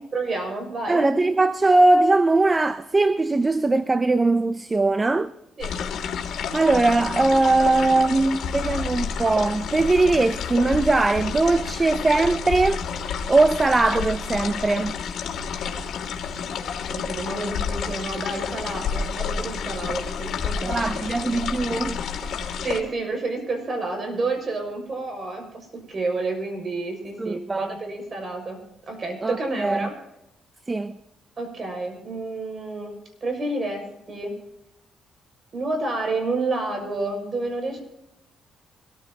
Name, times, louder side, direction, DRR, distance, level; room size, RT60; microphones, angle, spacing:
voice 1, 0.1-1.2 5.6-5.8 16.9-21.1 22.3-28.6 28.9-30.0 31.4-34.4 35.5-37.8, right 2 dB, 40° right, 6.3 m, -30 dB
voice 2, 0.9-5.3 6.5-12.9 13.3-15.0 20.7-22.0 27.2-27.7 29.2-29.9 30.7-31.0, right 2 dB, 25° right, 0.6 m, -20 dB
sound 1, 5.6-22.8, left 6 dB, 65° left, 2.9 m, -30 dB
24.0 x 15.0 x 3.0 m
cardioid pair, 90°, 0 cm